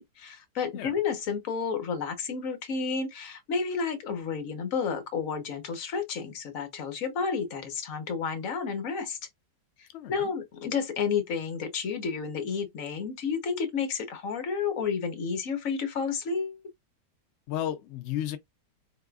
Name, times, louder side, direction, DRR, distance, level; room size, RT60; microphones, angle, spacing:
voice 1, 0.0-9.2 9.8-16.6, left 5 dB, 60° left, 1.2 m, -31 dB
voice 2, 9.9-10.3 17.5-18.4, left 11 dB, 75° left, 0.6 m, -33 dB
4.0 x 3.6 x 2.3 m
omnidirectional pair, 1.8 m